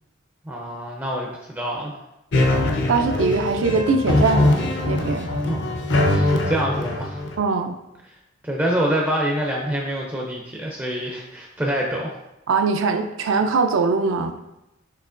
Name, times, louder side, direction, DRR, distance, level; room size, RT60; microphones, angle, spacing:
voice 1, 0.4-2.0 5.4-5.6 5.9-7.2 8.4-12.1, right 1 dB, 10° right, -2 dB, 0.4 m, -26 dB
sound 1, 2.3-7.3, left 2 dB, 60° left, 0.6 m, -22 dB
voice 2, 2.9-5.3 7.4-7.7 12.5-14.3, right 4 dB, 75° right, 6 dB, 0.4 m, -21 dB
6.6 x 2.9 x 2.5 m, 0.92 s
head